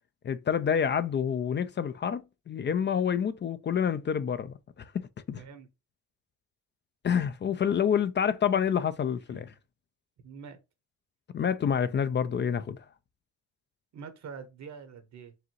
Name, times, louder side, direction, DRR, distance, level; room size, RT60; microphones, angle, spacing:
voice 1, 0.2-5.4 7.0-9.5 11.3-12.8, left 7 dB, 35° left, 0.5 m, -28 dB
voice 2, 5.4-5.7 9.3-9.4 10.2-10.6 13.9-15.3, right 6 dB, 65° right, 1.2 m, -45 dB
4.8 x 2.7 x 2.9 m
cardioid pair, 90°, 30 cm